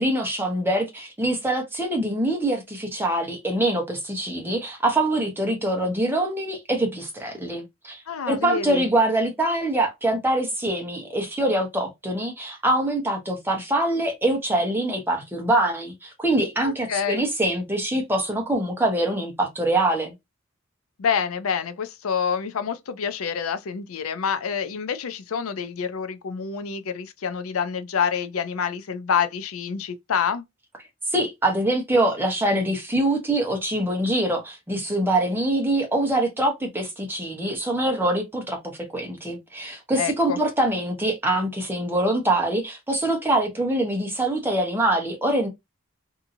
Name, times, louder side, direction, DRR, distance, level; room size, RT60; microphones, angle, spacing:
voice 1, 0.0-8.0 8.3-20.1 31.1-45.5, right 1 dB, 10° right, 0.9 m, -24 dB
voice 2, 8.1-8.9 16.6-17.3 21.0-30.4 40.0-40.4, left 7 dB, 85° left, 0.5 m, -27 dB
2.8 x 2.7 x 2.5 m
head